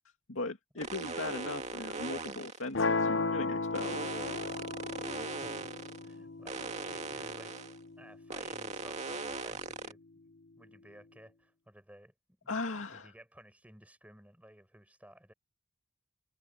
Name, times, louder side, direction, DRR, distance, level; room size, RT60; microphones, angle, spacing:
voice 1, 0.3-4.1 12.5-13.1, left 3 dB, 80° left, 2.3 m, -38 dB
sound 1, 0.8-2.7 3.7-6.1 6.5-7.8 8.3-9.9, right 3 dB, 35° right, 2.2 m, -39 dB
sound 2, 2.7-8.8, left 3 dB, 65° left, 0.7 m, -35 dB
voice 2, 6.0-7.5 8.0-12.1 12.4-15.3, right 1 dB, 5° right, 5.9 m, -57 dB
head